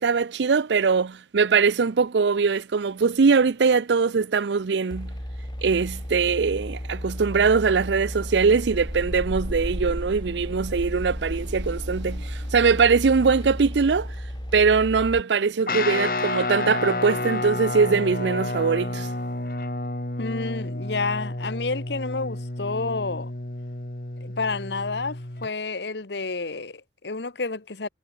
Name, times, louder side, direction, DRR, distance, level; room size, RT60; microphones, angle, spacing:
voice 1, 0.0-5.1 5.6-14.1 14.5-19.1, right 5 dB, 85° right, 0.5 m, -22 dB
sound 1, 4.9-15.2, equal, 25° left, 3.2 m, -33 dB
Guitar, 15.7-25.5, left 2 dB, 50° left, 2.4 m, -30 dB
voice 2, 20.2-23.3 24.2-27.9, left 3 dB, 80° left, 1.2 m, -30 dB
head